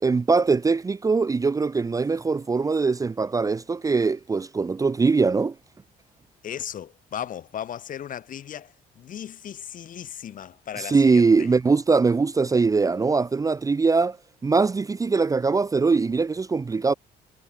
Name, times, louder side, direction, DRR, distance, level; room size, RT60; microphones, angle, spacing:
voice 1, 0.0-5.5 10.9-14.2 14.4-16.9, right 4 dB, 20° right, 0.7 m, -22 dB
voice 2, 6.4-11.5, left 10 dB, 50° left, 3.5 m, -36 dB
cardioid pair, 110°, 17 cm